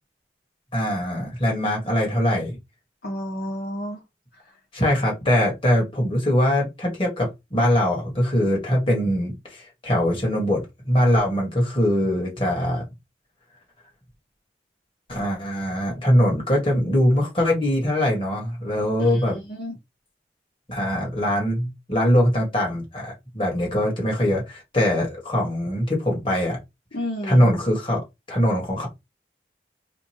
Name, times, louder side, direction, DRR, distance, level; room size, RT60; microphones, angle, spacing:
voice 1, 0.7-2.6 4.7-12.8 15.1-19.4 20.7-26.6 27.3-28.9, equal, 30° left, 1.7 m, -22 dB
voice 2, 3.0-4.0 19.0-19.7 26.9-27.4, equal, 60° left, 1.1 m, -31 dB
5.0 x 2.3 x 3.0 m
head